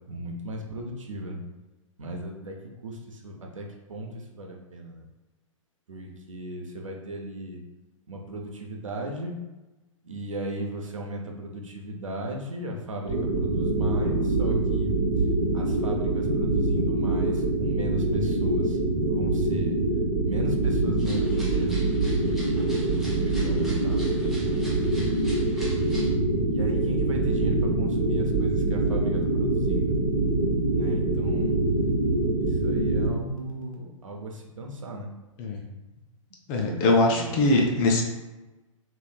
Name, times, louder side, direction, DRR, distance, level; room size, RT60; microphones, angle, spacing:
voice 1, 0.1-1.4 2.0-2.6 2.8-5.1 5.9-7.6 8.1-9.3 10.0-15.0 15.5-18.8 19.1-19.8 20.2-21.8 22.3-24.2 26.5-29.9 30.7-31.6 32.4-35.1 36.6-36.8 37.0-37.4, right 1 dB, 70° right, 1 dB, 0.7 m, -36 dB
sound 1, 13.1-33.1, right 2 dB, 35° right, 1.2 m, -25 dB
sound 2, 21.0-26.1, right 1 dB, ahead, 0.7 m, -43 dB
sound 3, 26.2-33.7, right 2 dB, 75° left, 0.6 m, -34 dB
voice 2, 36.5-38.0, left 2 dB, 20° left, 1 dB, 0.3 m, -22 dB
3.2 x 3.0 x 2.3 m, 1.1 s
figure-of-eight pair, 115°, 17 cm